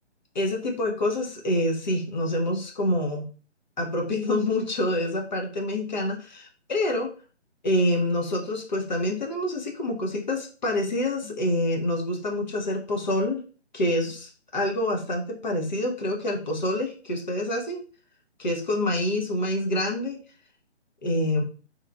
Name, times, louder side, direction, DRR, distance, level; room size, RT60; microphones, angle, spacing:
voice 1, 0.3-3.3 3.8-7.1 7.6-13.4 13.7-17.8 18.4-20.2 21.0-21.4, left 1 dB, 40° left, 1 dB, 0.8 m, -26 dB
3.4 x 3.1 x 2.3 m, 0.37 s
figure-of-eight pair, 145°, 36 cm